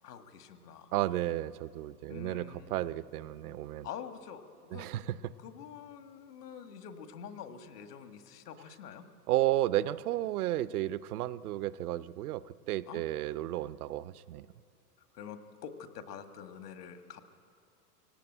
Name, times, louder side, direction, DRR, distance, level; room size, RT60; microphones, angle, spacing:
voice 1, 0.0-0.9 2.1-2.9 3.8-4.9 5.4-9.0 12.9-13.0 15.0-17.2, left 8 dB, 75° left, 8 dB, 1.9 m, -46 dB
voice 2, 0.9-3.9 4.7-5.3 9.3-14.5, right 14 dB, 70° right, 16 dB, 0.7 m, -33 dB
18.5 x 17.5 x 9.0 m, 2.3 s
hypercardioid pair, 105°, 47 cm